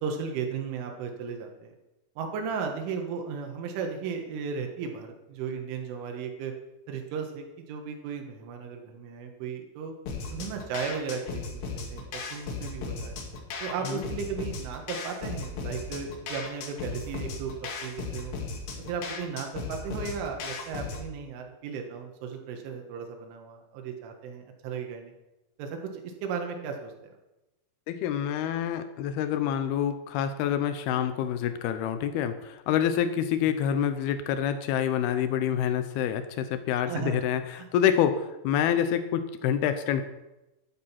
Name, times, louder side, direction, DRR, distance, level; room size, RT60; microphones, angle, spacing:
voice 1, 0.0-1.7 2.2-6.5 6.9-9.9 10.3-11.6 11.9-13.1 13.6-17.5 17.8-18.4 18.9-25.1 25.6-26.9 36.9-37.2 37.6-37.7, right 6 dB, 80° right, 3 dB, 4.1 m, -35 dB
sound 1, 10.1-21.1, left 4 dB, 70° left, 4.0 m, -36 dB
voice 2, 27.9-40.1, left 9 dB, 85° left, 9 dB, 2.2 m, -27 dB
12.5 x 10.5 x 5.8 m, 0.99 s
omnidirectional pair, 5.5 m